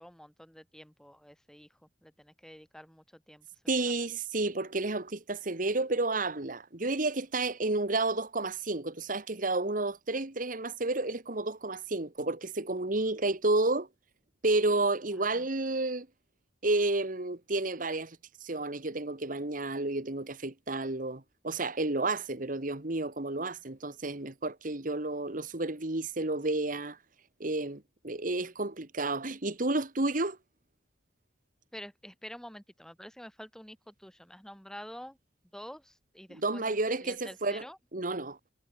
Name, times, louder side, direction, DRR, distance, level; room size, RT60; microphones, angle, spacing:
voice 1, 0.0-3.9 15.1-15.5 31.7-35.2 35.5-37.8, equal, 5° left, 2.6 m, -48 dB
voice 2, 3.7-13.9 14.4-16.1 16.6-27.0 27.4-30.4 36.4-37.6 37.9-38.4, right 2 dB, 50° right, 1.8 m, -31 dB
head